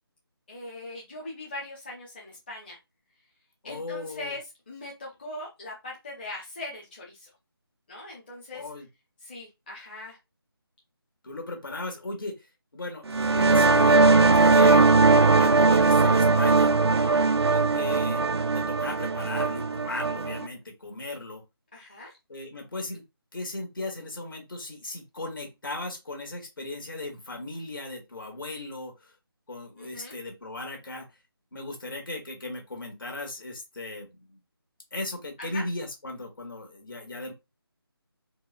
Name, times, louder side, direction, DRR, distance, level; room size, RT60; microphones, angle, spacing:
voice 1, 0.5-2.8 3.6-4.4 4.7-7.3 7.9-8.6 9.2-10.2 17.0-17.3 21.7-22.2 29.8-30.2 35.4-35.6, left 2 dB, 25° left, -4 dB, 0.7 m, -40 dB
voice 2, 3.6-4.3 8.5-8.9 11.2-12.4 12.7-14.9 15.3-16.7 17.5-18.2 18.5-21.4 22.3-23.0 23.3-29.1 29.5-31.1 31.5-34.4 34.9-37.3, left 2 dB, 55° left, 3 dB, 1.4 m, -37 dB
sound 1, 13.1-20.5, right 3 dB, 90° right, 0.5 m, -20 dB
4.5 x 2.1 x 2.4 m, 0.23 s
figure-of-eight pair, 165°, 13 cm